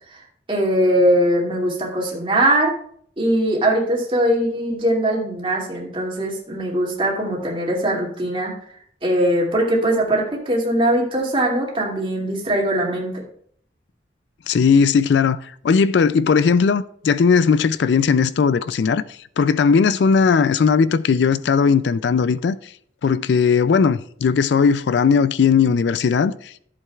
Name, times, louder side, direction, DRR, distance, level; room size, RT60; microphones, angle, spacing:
voice 1, 0.5-2.7 3.2-8.5 9.0-13.2, right 1 dB, 30° right, 2.4 m, -21 dB
voice 2, 14.5-15.4 15.6-19.0 19.4-22.6 23.0-26.5, left 5 dB, 70° left, 0.4 m, -17 dB
14.0 x 7.5 x 2.4 m
head